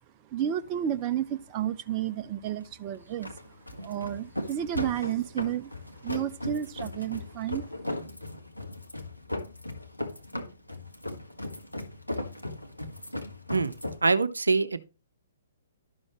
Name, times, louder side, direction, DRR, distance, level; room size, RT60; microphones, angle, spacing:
voice 1, 0.3-3.3 3.8-5.7 6.0-7.6, right 10 dB, 30° right, 0.6 m, -31 dB
sound 1, 0.6-14.0, left 1 dB, 90° left, 1.6 m, -38 dB
voice 2, 14.0-14.8, right 3 dB, 75° right, 0.7 m, -24 dB
12.0 x 6.3 x 3.1 m
figure-of-eight pair, 120°, 0 cm